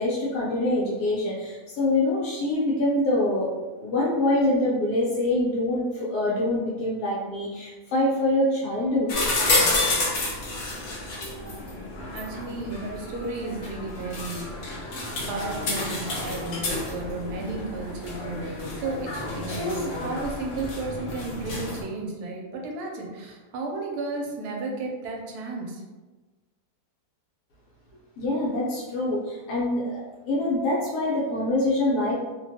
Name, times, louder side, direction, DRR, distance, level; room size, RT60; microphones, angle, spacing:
voice 1, 0.0-3.5 3.8-9.1 28.2-30.0 30.3-32.1, left 1 dB, 80° left, -6 dB, 1.2 m, -25 dB
maquinas juego monedas, 9.1-21.8, left 2 dB, 60° left, 0.9 m, -30 dB
voice 2, 11.4-11.8 12.1-14.8 15.3-25.8, right 3 dB, 80° right, 0 dB, 1.1 m, -33 dB
2.9 x 2.2 x 2.7 m, 1.2 s
omnidirectional pair, 1.7 m